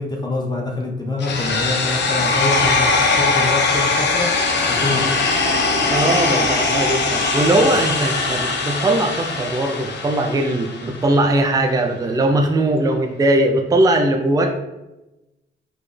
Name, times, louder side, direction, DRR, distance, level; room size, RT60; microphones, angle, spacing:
voice 1, 0.0-2.9 3.1-4.3 4.7-5.1, left 2 dB, 20° left, -1 dB, 0.7 m, -25 dB
sound 1, 1.2-11.2, left 3 dB, 60° left, 0.8 m, -20 dB
voice 2, 5.9-14.6, right 1 dB, 20° right, 3 dB, 0.5 m, -19 dB
4.1 x 3.4 x 3.3 m, 1.0 s
cardioid pair, 90°, 20 cm